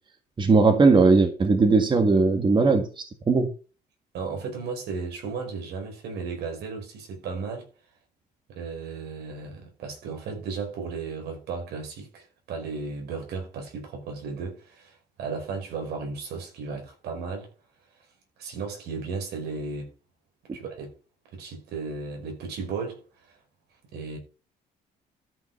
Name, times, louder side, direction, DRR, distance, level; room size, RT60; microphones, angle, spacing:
voice 1, 0.4-2.9 3.3-3.5, right 4 dB, 30° right, 1.9 m, -18 dB
voice 2, 4.1-7.7 8.5-17.5 18.4-19.9 20.5-20.9 21.3-23.0 23.9-24.2, right 4 dB, 75° right, 5.4 m, -35 dB
13.0 x 6.2 x 5.7 m
cardioid pair, 110°, 17 cm